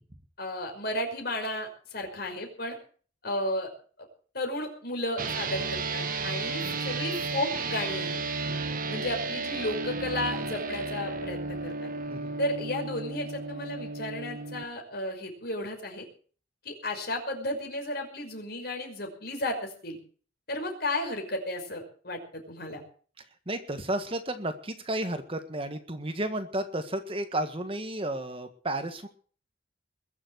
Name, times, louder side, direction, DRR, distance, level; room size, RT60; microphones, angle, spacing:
voice 1, 0.4-2.8 3.2-3.7 4.3-8.2 8.9-11.9 12.4-16.1 16.6-20.0 20.5-22.8, left 1 dB, 55° left, 3 dB, 5.6 m, -33 dB
sound 1, 5.2-14.6, right 3 dB, 50° right, 1.5 m, -33 dB
voice 2, 23.5-29.1, right 1 dB, 30° right, 8 dB, 1.6 m, -32 dB
21.5 x 7.5 x 8.0 m, 0.44 s
head